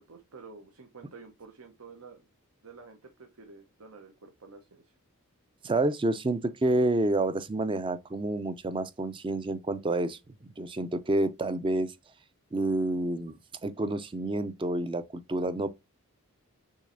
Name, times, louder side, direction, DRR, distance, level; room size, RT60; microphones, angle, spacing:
voice 1, 0.0-2.2 2.6-4.9, right 4 dB, 80° right, 0.9 m, -50 dB
voice 2, 5.6-10.2 10.6-11.9 12.5-13.3 13.6-15.7, right 2 dB, 20° right, 0.4 m, -28 dB
6.4 x 3.2 x 2.6 m
head